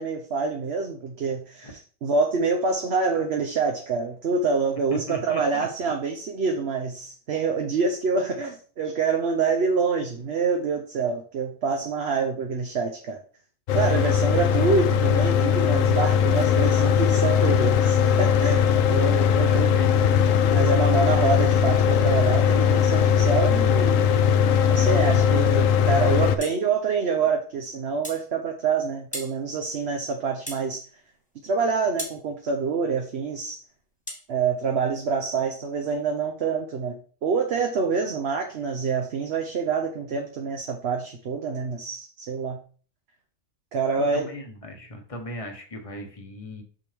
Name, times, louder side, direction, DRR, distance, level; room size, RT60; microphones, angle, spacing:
voice 1, 0.0-13.2 13.7-19.7 20.5-24.1 24.6-30.8 31.4-33.6 34.3-42.6 43.7-44.3, right 5 dB, 50° right, 3 dB, 0.9 m, -26 dB
voice 2, 4.9-5.7 19.2-20.2 44.0-46.6, equal, 25° left, 3 dB, 1.2 m, -37 dB
Mechanical fan, 13.7-26.4, left 7 dB, 65° left, 0.9 m, -20 dB
sound 1, 26.4-26.6 28.0-28.3 29.1-29.4 30.5-30.7 32.0-32.2 34.1-34.3, left 1 dB, 5° left, 1.1 m, -35 dB
6.2 x 6.1 x 3.4 m, 0.41 s
omnidirectional pair, 1.6 m